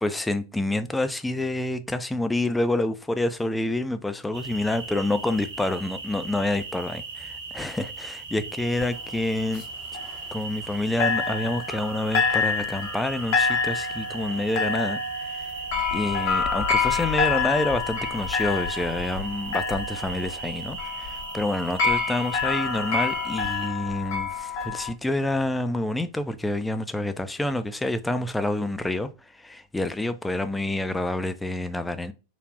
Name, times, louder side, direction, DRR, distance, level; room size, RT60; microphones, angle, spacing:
voice 1, 0.0-9.6 10.3-15.0 15.4-15.5 15.9-29.1 29.4-32.1, left 1 dB, 5° left, 0.3 m, -28 dB
sound 1, 4.3-23.7, right 4 dB, 60° right, 1.1 m, -38 dB
sound 2, 8.8-10.7 11.0-24.9, left 5 dB, 50° left, 0.8 m, -28 dB
3.2 x 2.4 x 2.4 m
figure-of-eight pair, 90°, 0 cm